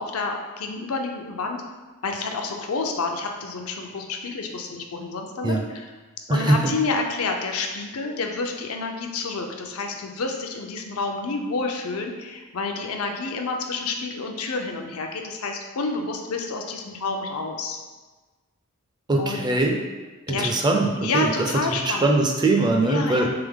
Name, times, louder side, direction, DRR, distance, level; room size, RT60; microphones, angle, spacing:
voice 1, 0.0-1.6 2.0-5.9 6.3-17.8 19.2-19.5 20.3-20.5 21.0-22.1 22.8-23.3, left 3 dB, 75° left, 3 dB, 0.5 m, -29 dB
voice 2, 6.3-6.7 19.1-19.7 20.3-21.5 21.8-23.3, right 2 dB, 20° right, 2 dB, 0.4 m, -21 dB
3.5 x 3.4 x 3.5 m, 1.3 s
head